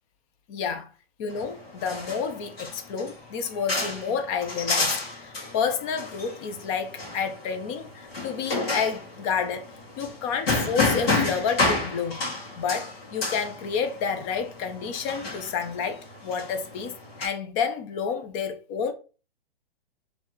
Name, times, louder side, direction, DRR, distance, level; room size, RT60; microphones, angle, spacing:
voice 1, 0.5-0.9 1.2-9.7 10.0-12.2 12.6-18.9, left 6 dB, 30° left, 0.8 m, -30 dB
sound 1, 1.3-17.3, left 3 dB, 70° left, 2.0 m, -31 dB
4.5 x 3.5 x 2.9 m
hypercardioid pair, 130°, 31 cm